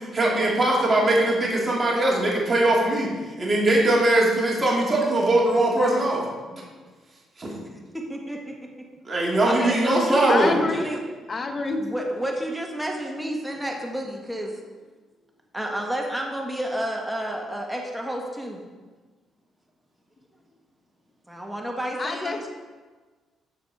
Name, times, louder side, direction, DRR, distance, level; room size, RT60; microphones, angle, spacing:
voice 1, 0.1-3.1 3.4-6.2 7.4-7.5 9.1-10.5, right 1 dB, 25° right, -4 dB, 2.5 m, -21 dB
voice 2, 7.6-8.9 9.4-11.0 11.8-14.6 15.5-18.6 21.3-22.5, right 1 dB, 5° right, 0 dB, 1.4 m, -31 dB
voice 3, 10.3-10.9 11.3-11.9 22.0-22.5, left 3 dB, 35° left, 4 dB, 1.2 m, -27 dB
13.0 x 4.8 x 4.8 m, 1.3 s
cardioid pair, 90°, 0 cm